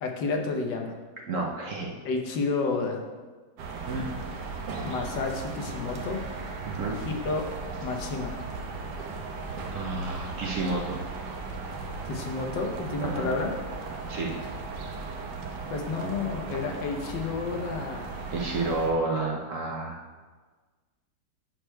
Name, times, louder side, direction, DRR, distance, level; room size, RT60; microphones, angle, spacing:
voice 1, 0.0-1.0 2.0-3.0 4.8-6.2 7.1-7.5 7.8-8.4 12.0-13.5 15.7-18.2, left 4 dB, 90° left, 2 dB, 1.6 m, -30 dB
voice 2, 1.3-1.9 3.9-4.0 6.6-7.0 9.7-11.0 13.0-13.3 14.1-14.4 18.3-20.0, right 3 dB, 60° right, -1 dB, 0.9 m, -30 dB
sound 1, 3.6-18.9, right 4 dB, 75° right, 1.3 m, -37 dB
10.0 x 6.3 x 2.2 m, 1.4 s
omnidirectional pair, 1.9 m